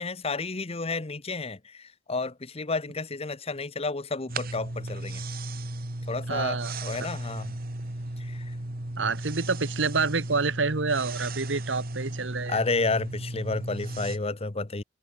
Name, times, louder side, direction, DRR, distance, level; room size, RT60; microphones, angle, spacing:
voice 1, 0.0-5.2 6.1-7.6 8.2-8.5 12.5-14.8, left 3 dB, 35° left, 1.1 m, -31 dB
sound 1, 4.3-14.2, right 1 dB, 55° right, 2.2 m, -35 dB
voice 2, 6.3-6.7 7.0-7.1 9.0-12.6, right 4 dB, 80° right, 1.3 m, -28 dB
head